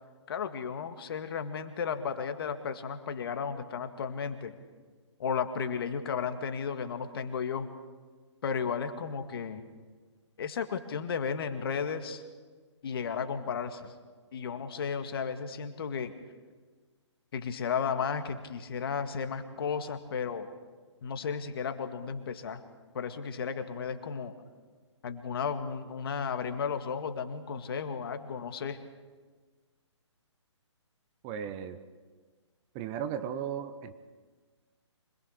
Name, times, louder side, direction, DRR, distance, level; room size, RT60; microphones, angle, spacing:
voice 1, 0.3-4.6 5.2-7.7 8.4-9.6 10.4-12.2 12.8-13.9 14.3-16.1 17.3-20.5 21.0-22.6 22.9-24.3 25.0-28.8, left 6 dB, 50° left, 8 dB, 2.0 m, -34 dB
voice 2, 31.2-31.8 32.7-33.9, right 8 dB, 25° right, 10 dB, 1.0 m, -35 dB
25.5 x 21.0 x 6.6 m, 1.4 s
figure-of-eight pair, 140°, 16 cm